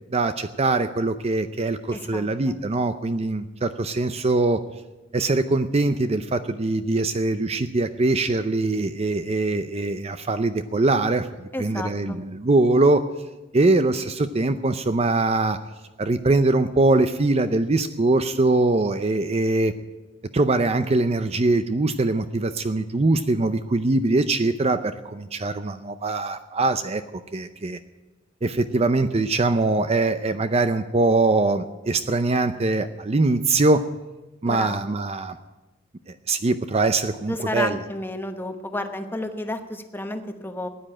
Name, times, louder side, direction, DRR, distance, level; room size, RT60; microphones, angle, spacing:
voice 1, 0.1-4.6 5.1-13.0 13.5-15.6 16.0-19.7 20.3-27.8 28.4-33.8 34.4-35.4 36.3-37.8, right 2 dB, 30° right, 10 dB, 0.5 m, -22 dB
voice 2, 1.9-2.6 11.5-12.2 34.4-34.9 37.3-40.7, left 1 dB, 10° left, 6 dB, 1.1 m, -31 dB
15.5 x 10.0 x 8.7 m, 1.1 s
head